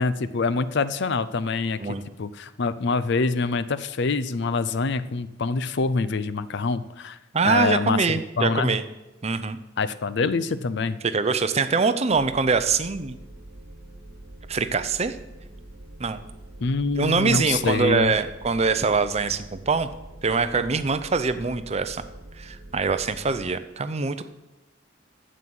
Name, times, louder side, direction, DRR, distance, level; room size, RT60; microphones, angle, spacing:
voice 1, 0.0-7.2 7.4-8.7 9.8-11.0 16.6-18.1, left 4 dB, 60° left, 15 dB, 0.5 m, -25 dB
voice 2, 7.3-8.8 9.2-9.6 11.0-13.2 14.5-15.2 16.0-16.2 17.0-19.9 20.2-22.0 22.4-24.2, right 4 dB, 35° right, 11 dB, 0.6 m, -24 dB
sound 1, 12.1-23.5, right 1 dB, 60° right, 1.7 m, -44 dB
9.2 x 7.7 x 7.8 m, 1.0 s
head